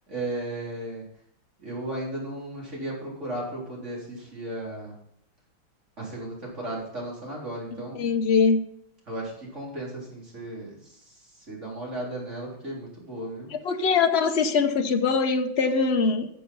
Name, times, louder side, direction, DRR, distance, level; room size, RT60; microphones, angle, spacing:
voice 1, 0.1-1.1 1.6-5.0 6.0-8.1 9.1-11.1 11.5-13.5, right 1 dB, 35° right, -4 dB, 4.0 m, -35 dB
voice 2, 7.9-8.6 13.5-16.3, left 5 dB, 55° left, 6 dB, 0.7 m, -22 dB
13.0 x 6.9 x 5.5 m, 0.73 s
omnidirectional pair, 2.2 m